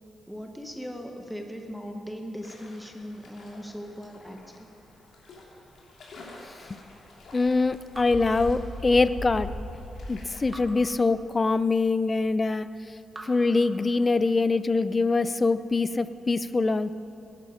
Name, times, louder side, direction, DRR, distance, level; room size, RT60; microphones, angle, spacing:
voice 1, 0.3-4.7, equal, ahead, 3 dB, 1.0 m, -39 dB
sound 1, 2.4-10.5, left 2 dB, 70° left, 3.2 m, -42 dB
voice 2, 7.3-9.5 10.1-12.7 13.2-16.9, left 3 dB, 25° left, 14 dB, 0.4 m, -24 dB
Raindrop / Drip, 7.9-9.3 10.5-11.9 13.1-14.5, right 1 dB, 25° right, 1.4 m, -48 dB
18.5 x 11.0 x 5.1 m, 2.8 s
cardioid pair, 130°, 0 cm